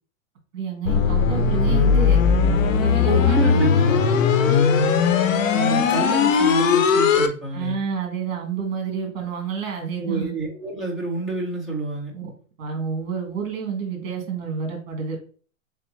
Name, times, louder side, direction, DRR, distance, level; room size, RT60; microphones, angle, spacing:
voice 1, 0.5-2.2 2.8-3.5 4.5-4.7 7.5-10.3 12.1-12.3 12.6-15.3, right 6 dB, 45° right, 3 dB, 1.8 m, -29 dB
sound 1, 0.8-7.3, left 6 dB, 70° left, 0.8 m, -18 dB
voice 2, 3.0-4.2 5.5-7.8 10.0-12.1, right 2 dB, ahead, -7 dB, 0.5 m, -27 dB
3.7 x 3.4 x 3.1 m, 0.41 s
hypercardioid pair, 155°, 40 cm